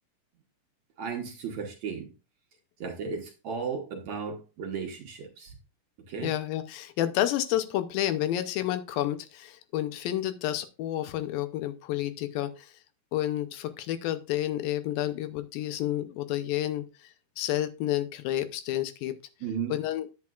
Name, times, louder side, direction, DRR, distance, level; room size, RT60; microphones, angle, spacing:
voice 1, 1.0-2.1 2.8-5.5 6.1-6.3 19.4-19.7, right 6 dB, 60° right, 1 dB, 2.0 m, -35 dB
voice 2, 6.2-12.7 13.1-16.8 17.4-19.1 19.7-20.1, left 13 dB, 80° left, 11 dB, 2.5 m, -30 dB
9.8 x 8.7 x 2.4 m, 0.31 s
omnidirectional pair, 4.3 m